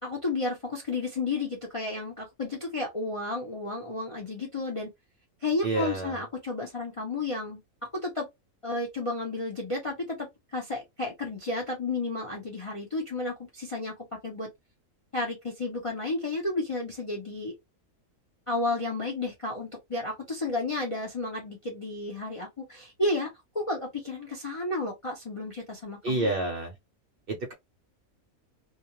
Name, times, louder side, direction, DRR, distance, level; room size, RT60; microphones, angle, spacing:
voice 1, 0.0-4.9 5.4-8.3 8.6-13.9 14.2-14.5 15.1-17.5 18.5-26.3, left 2 dB, 45° left, 0.4 m, -32 dB
voice 2, 5.6-6.2 26.0-26.7 27.3-27.5, right 2 dB, 60° right, 0.6 m, -29 dB
2.3 x 2.3 x 2.9 m
omnidirectional pair, 1.5 m